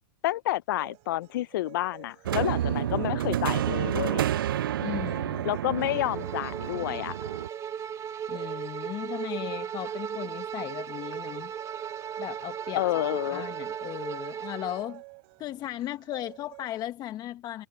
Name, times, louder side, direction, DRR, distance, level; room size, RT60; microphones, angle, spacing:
voice 1, 0.2-4.2 5.4-7.2 12.8-13.5, left 16 dB, 70° left, 0.4 m, -29 dB
sound 1, 0.7-16.9, right 33 dB, 55° right, 3.2 m, -51 dB
sound 2, 2.3-7.5, right 11 dB, 80° right, 0.4 m, -29 dB
voice 2, 4.8-5.5 8.3-11.5 12.2-12.8 13.3-15.0 15.4-17.7, left 13 dB, 35° left, 1.1 m, -36 dB
Bowed string instrument, 5.7-14.9, right 8 dB, 25° right, 2.4 m, -36 dB
hypercardioid pair, 110°, 11 cm